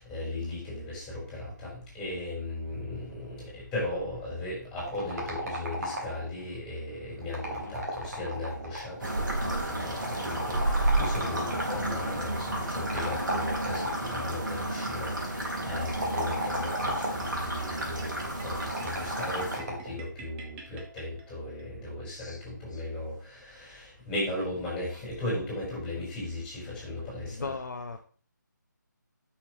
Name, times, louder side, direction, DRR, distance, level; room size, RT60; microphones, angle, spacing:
voice 1, 0.0-27.5, left 1 dB, 10° left, -5 dB, 4.8 m, -37 dB
sound 1, 4.8-6.4 7.2-9.1 10.0-11.9 12.9-14.2 15.8-17.4 18.6-19.9, equal, 55° right, 3.1 m, -35 dB
sound 2, 9.0-19.6, right 1 dB, 75° right, 3.6 m, -31 dB
sound 3, 17.2-21.7, right 3 dB, 10° right, 0.6 m, -49 dB
voice 2, 22.1-22.4 22.7-22.8 26.6-26.8 27.3-28.0, left 4 dB, 65° left, 6 dB, 0.9 m, -39 dB
10.5 x 6.1 x 3.2 m, 0.42 s
figure-of-eight pair, 160°, 11 cm